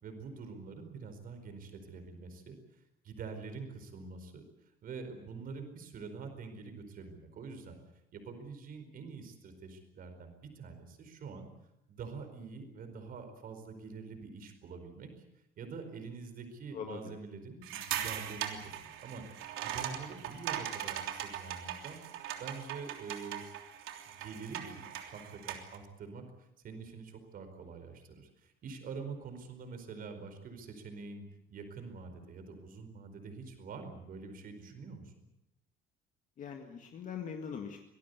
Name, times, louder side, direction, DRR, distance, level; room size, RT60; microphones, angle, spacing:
voice 1, 0.0-4.4 4.8-7.8 8.1-11.5 11.9-15.1 15.6-22.0 22.3-23.4 24.0-35.3, right 4 dB, 45° right, 7 dB, 4.7 m, -46 dB
voice 2, 16.7-17.2 36.4-37.8, left 7 dB, 40° left, 4 dB, 1.9 m, -42 dB
sound 1, 17.6-25.8, right 10 dB, 80° right, 3.2 m, -40 dB
25.5 x 18.5 x 8.2 m, 0.84 s
cardioid pair, 170°, 21 cm